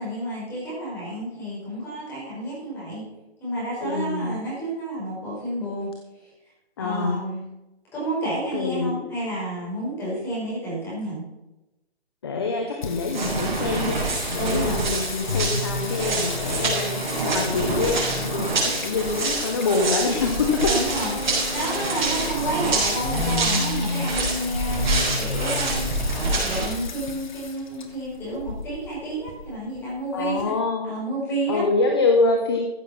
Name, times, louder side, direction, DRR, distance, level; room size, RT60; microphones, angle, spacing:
voice 1, 0.0-3.0 3.4-5.9 6.8-7.5 7.9-11.2 14.4-14.8 20.7-26.0 26.4-30.5 30.8-31.6, right 1 dB, 5° left, -7 dB, 4.8 m, -30 dB
voice 2, 3.8-4.3 6.8-7.2 8.5-9.0 12.2-21.1 30.1-30.9 31.5-32.6, left 3 dB, 25° left, 3 dB, 1.1 m, -25 dB
Singing, 12.8-30.4, left 4 dB, 45° left, 1.7 m, -33 dB
sound 1, 13.1-26.7, right 2 dB, 45° right, 6.0 m, -26 dB
15.0 x 8.1 x 5.8 m, 0.97 s
hypercardioid pair, 170°, 32 cm